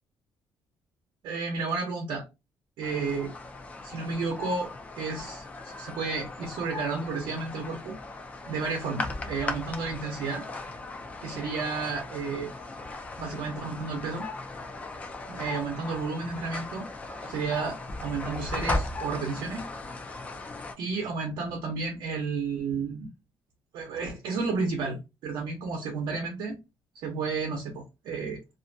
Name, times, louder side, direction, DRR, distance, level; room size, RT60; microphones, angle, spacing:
voice 1, 1.2-2.2 2.8-3.3 3.8-7.9 8.5-10.4 11.2-12.5 13.2-14.2 15.3-16.9 17.2-19.7 20.1-20.2 20.8-23.1 23.7-26.6 27.0-28.4, right 4 dB, 80° right, 0.7 m, -32 dB
sound 1, 2.8-20.7, left 2 dB, 20° left, 0.3 m, -37 dB
2.5 x 2.1 x 2.5 m
cardioid pair, 170°, 8 cm